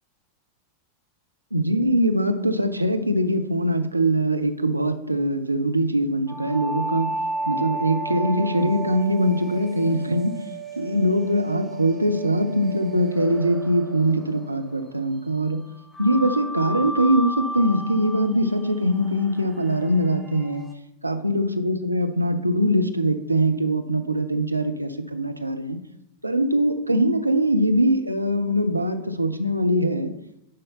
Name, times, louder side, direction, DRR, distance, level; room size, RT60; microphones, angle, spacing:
voice 1, 1.5-7.1 7.5-10.4 10.8-15.6 16.0-20.7 21.0-25.8 26.2-30.1, equal, 85° right, 7 dB, 0.6 m, -22 dB
sound 1, 6.3-15.1 15.9-20.7, right 2 dB, 5° left, 0.9 m, -33 dB
10.5 x 5.5 x 3.6 m, 0.80 s
figure-of-eight pair, 90°, 0 cm